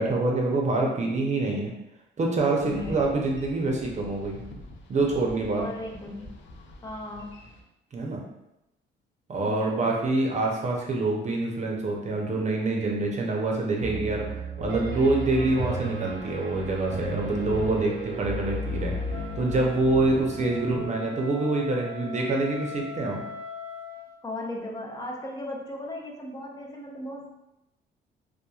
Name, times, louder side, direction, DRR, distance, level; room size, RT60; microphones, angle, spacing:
voice 1, 0.0-1.7 2.2-4.4 4.9-5.7 7.9-8.2 9.3-23.2, right 2 dB, 35° right, -1 dB, 0.6 m, -26 dB
Boat Water vehicle, 2.5-7.6, left 2 dB, 70° left, 0.5 m, -46 dB
voice 2, 2.7-3.1 5.6-6.3 6.8-7.4 9.4-9.9 24.2-27.3, left 1 dB, 20° left, 0 dB, 0.5 m, -36 dB
Piano, 13.8-20.9, right 1 dB, 80° right, 0.6 m, -34 dB
Wind instrument woodwind instrument, 19.1-24.1, left 5 dB, 50° left, 1.0 m, -40 dB
2.9 x 2.2 x 2.3 m, 0.90 s
cardioid pair, 90°, 20 cm